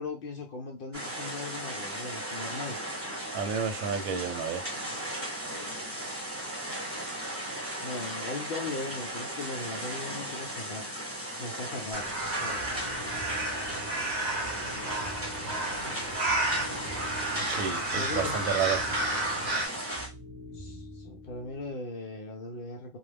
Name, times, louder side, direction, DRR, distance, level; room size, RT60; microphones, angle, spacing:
voice 1, 0.0-2.8 7.8-10.8 11.4-12.1 12.4-12.6 17.9-18.4 20.5-23.0, left 3 dB, 65° left, 0.5 m, -38 dB
sound 1, 0.9-20.1, right 1 dB, 10° right, 0.8 m, -36 dB
voice 2, 3.3-4.7 17.5-18.8, right 7 dB, 85° right, 1.0 m, -31 dB
sound 2, 11.9-19.7, right 2 dB, 55° right, 0.9 m, -32 dB
sound 3, 12.5-21.7, left 1 dB, 40° right, 0.3 m, -46 dB
2.4 x 2.1 x 3.2 m
omnidirectional pair, 1.4 m